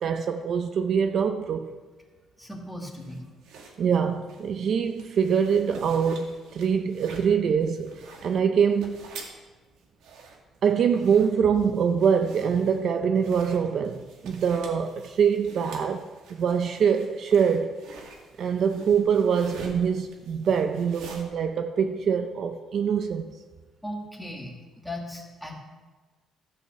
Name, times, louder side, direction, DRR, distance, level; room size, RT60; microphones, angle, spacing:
voice 1, 0.0-1.7 3.8-9.1 10.6-17.7 18.4-23.3, right 7 dB, 50° right, 0.6 m, -24 dB
voice 2, 2.4-3.3 23.8-25.6, left 1 dB, ahead, 1.8 m, -37 dB
sound 1, 2.9-21.2, right 4 dB, 85° right, 2.0 m, -48 dB
14.0 x 5.9 x 7.3 m
cardioid pair, 140°, 0 cm